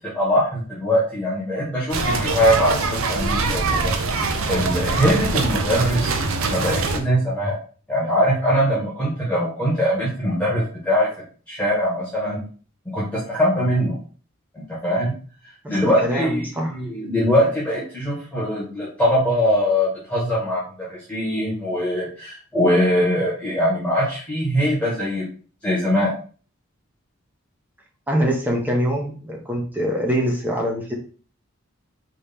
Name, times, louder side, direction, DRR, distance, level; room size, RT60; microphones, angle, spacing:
voice 1, 0.1-3.9 4.5-7.5 7.9-11.1 11.5-12.4 12.9-14.0 14.5-15.1 15.7-20.6 20.9-25.2 25.6-26.1, equal, 5° left, -7 dB, 1.4 m, -22 dB
sound 1, 1.9-7.0, right 3 dB, 90° right, 0.7 m, -23 dB
voice 2, 15.6-16.7 28.1-30.9, equal, 10° right, -1 dB, 0.9 m, -24 dB
4.2 x 3.1 x 3.5 m, 0.39 s
head